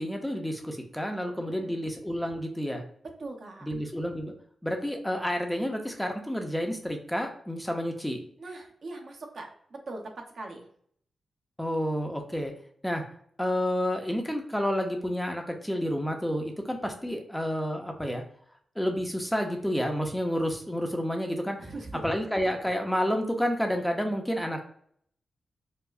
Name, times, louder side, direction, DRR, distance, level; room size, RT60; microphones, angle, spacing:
voice 1, 0.0-2.8 3.6-4.3 4.6-8.2 11.6-12.5 12.8-13.0 13.4-18.2 18.8-21.7 22.0-24.6, equal, 5° left, 3 dB, 0.5 m, -30 dB
voice 2, 1.4-1.8 3.2-3.7 8.4-10.7 21.6-22.0, right 2 dB, 60° right, 1 dB, 0.8 m, -41 dB
4.6 x 2.0 x 2.4 m, 0.63 s
wide cardioid pair, 115°, 0 cm